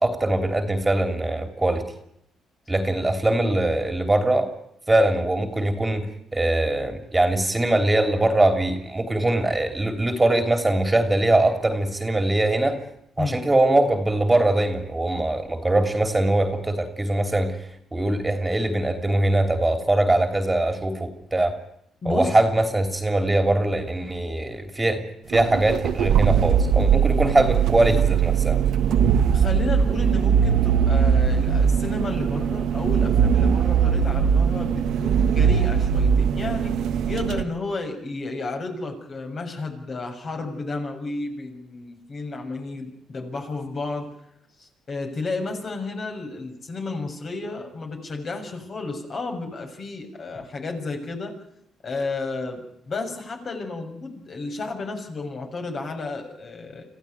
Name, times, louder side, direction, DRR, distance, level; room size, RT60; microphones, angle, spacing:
voice 1, 0.0-1.9 2.7-4.5 4.9-6.1 6.3-12.8 13.2-21.5 22.0-25.0 25.3-28.6, right 2 dB, 15° right, 7 dB, 3.0 m, -22 dB
voice 2, 22.0-22.4 29.3-36.8 37.1-44.1 44.6-51.3 51.8-56.8, left 3 dB, 45° left, 3 dB, 6.5 m, -32 dB
sound 1, 25.3-37.4, right 7 dB, 75° right, 1.4 m, -20 dB
26.0 x 15.0 x 9.4 m, 0.75 s
cardioid pair, 90°, 0 cm